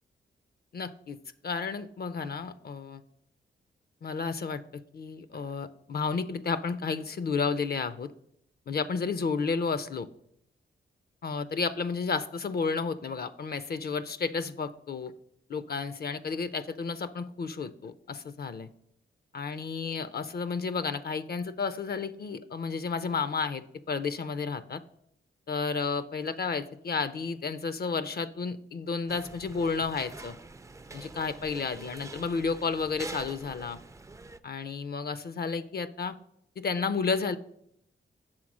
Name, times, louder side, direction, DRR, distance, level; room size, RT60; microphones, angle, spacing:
voice 1, 0.7-1.2 1.4-3.0 4.0-4.6 4.9-8.1 8.7-10.1 11.2-15.1 15.5-18.7 19.3-24.8 25.5-30.4 30.9-33.8 34.4-36.2 36.6-37.4, left 5 dB, 50° left, 14 dB, 0.4 m, -32 dB
sound 1, 29.1-34.4, right 3 dB, 15° right, 0.3 m, -45 dB
6.3 x 3.6 x 6.0 m, 0.73 s
cardioid pair, 60°, 20 cm